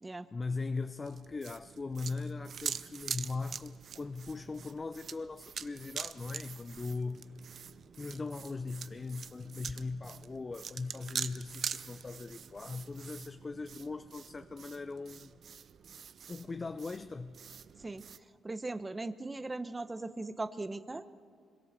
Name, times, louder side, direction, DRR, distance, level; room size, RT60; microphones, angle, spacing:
voice 1, 0.3-7.4 8.0-15.3 16.3-17.4, left 3 dB, 30° left, 11 dB, 0.6 m, -39 dB
sound 1, 1.0-18.2, right 7 dB, 55° right, 0.7 m, -44 dB
voice 2, 18.4-21.0, right 2 dB, 20° right, 11 dB, 1.0 m, -39 dB
25.5 x 22.0 x 6.9 m, 2.1 s
cardioid pair, 90°, 0 cm